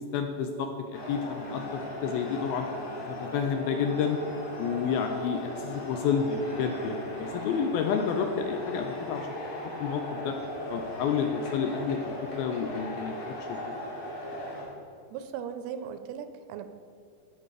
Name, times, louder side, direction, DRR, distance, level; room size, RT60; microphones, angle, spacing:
voice 1, 0.1-2.7 3.0-4.2 4.6-9.3 9.8-10.4 10.7-13.6, left 6 dB, 80° left, 5 dB, 2.2 m, -30 dB
sound 1, 0.9-14.6, left 1 dB, 50° left, 3.8 m, -38 dB
voice 2, 15.1-16.7, right 8 dB, 80° right, 10 dB, 2.5 m, -38 dB
14.5 x 5.2 x 4.9 m, 2.3 s
omnidirectional pair, 4.7 m